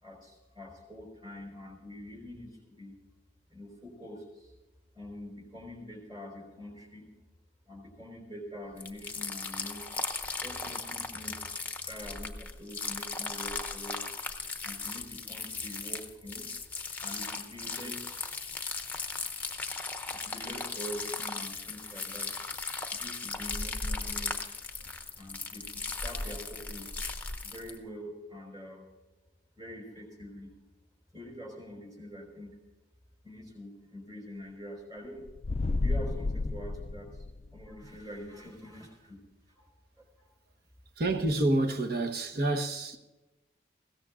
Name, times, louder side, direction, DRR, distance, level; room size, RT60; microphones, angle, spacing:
voice 1, 0.0-3.0 3.5-4.5 4.9-7.1 7.7-9.8 10.4-11.5 11.8-14.1 14.6-16.5 17.0-18.4 18.8-19.3 20.1-22.4 22.9-27.0 27.4-28.9 29.5-30.5 31.1-32.6 33.2-35.2 35.8-37.2 37.5-39.2 39.5-39.7 40.0-40.3, equal, 25° right, 4.8 m, -45 dB
sound 1, 8.8-27.8, left 4 dB, 10° left, 0.8 m, -37 dB
sound 2, 35.3-37.7, left 3 dB, 35° left, 0.3 m, -31 dB
voice 2, 41.0-43.0, right 2 dB, 55° right, 1.1 m, -28 dB
20.5 x 16.5 x 2.5 m
head